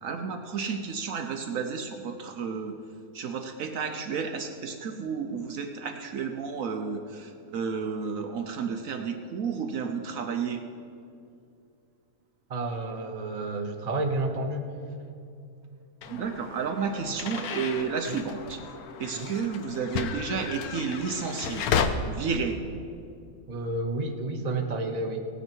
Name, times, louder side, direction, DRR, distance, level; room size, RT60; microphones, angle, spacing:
voice 1, 0.0-2.8 3.1-10.6 16.1-18.6 19.0-21.7 22.1-22.6, right 5 dB, 65° right, 5 dB, 1.1 m, -32 dB
voice 2, 12.5-14.7 17.1-17.2 18.1-18.2 19.1-19.3 23.5-25.2, right 2 dB, 30° right, 3 dB, 1.0 m, -30 dB
sound 1, 16.0-21.9, left 7 dB, 75° left, 1.2 m, -33 dB
17.5 x 9.7 x 4.5 m, 2.5 s
omnidirectional pair, 1.6 m